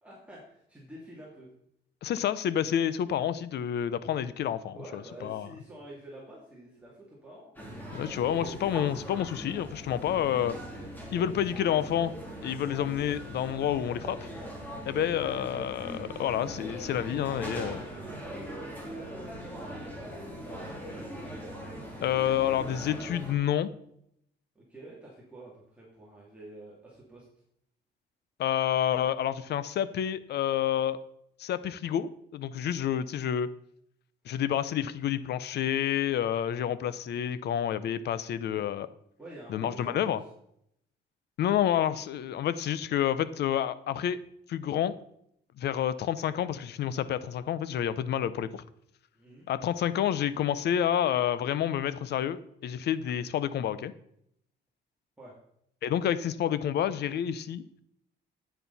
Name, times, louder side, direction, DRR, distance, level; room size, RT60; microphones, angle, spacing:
voice 1, 0.0-1.5 4.7-7.6 8.1-8.8 17.9-20.8 24.5-27.2 38.4-38.7 39.2-40.3 49.1-49.5 55.2-55.3, right 1 dB, 5° right, -6 dB, 2.7 m, -48 dB
voice 2, 2.0-5.5 7.9-10.6 11.1-12.1 12.4-14.2 14.9-17.9 22.0-23.7 28.4-31.0 31.4-33.5 34.3-38.9 39.5-40.2 41.4-44.2 44.5-44.9 45.6-48.6 49.5-53.9 55.8-57.6, left 10 dB, 70° left, 15 dB, 0.7 m, -29 dB
sound 1, 7.6-23.3, equal, 10° left, 3.0 m, -41 dB
10.5 x 9.2 x 4.1 m, 0.72 s
cardioid pair, 135°, 18 cm